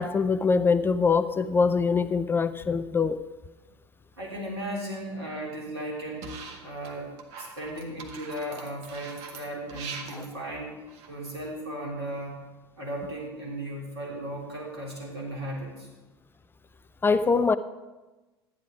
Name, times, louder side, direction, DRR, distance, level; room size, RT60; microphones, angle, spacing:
voice 1, 0.0-3.2 10.1-10.2 17.0-17.6, left 5 dB, 15° left, 13 dB, 0.4 m, -23 dB
voice 2, 4.2-6.3 6.6-7.1 7.4-10.8 11.1-12.4 12.8-15.9, right 1 dB, 75° right, -3 dB, 3.4 m, -36 dB
sound 1, 6.2-6.9 7.2-11.5, right 5 dB, 50° right, 1.5 m, -42 dB
12.0 x 10.0 x 4.9 m, 1.2 s
figure-of-eight pair, 75°, 14 cm